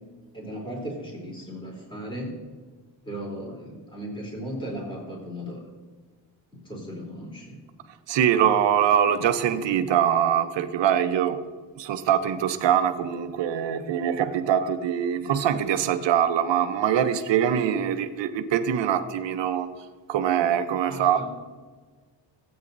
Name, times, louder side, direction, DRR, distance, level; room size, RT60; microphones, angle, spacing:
voice 1, 0.3-2.4 3.0-5.6 6.6-7.6 20.9-21.3, equal, 10° left, 3.2 m, -36 dB
voice 2, 8.1-11.4 11.8-19.7 20.1-21.3, right 9 dB, 70° right, 0.9 m, -23 dB
16.0 x 9.0 x 2.7 m
cardioid pair, 135°, 44 cm